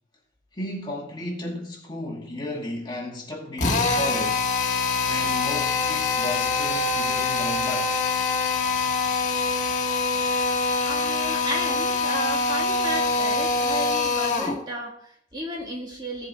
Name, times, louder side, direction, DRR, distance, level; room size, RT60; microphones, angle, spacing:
voice 1, 0.5-4.5 5.0-7.9, left 1 dB, 25° left, 2.2 m, -33 dB
Drill, 3.6-14.6, left 4 dB, 40° left, 1.5 m, -24 dB
voice 2, 10.7-16.3, equal, 25° right, 1.9 m, -33 dB
15.5 x 7.3 x 4.2 m
head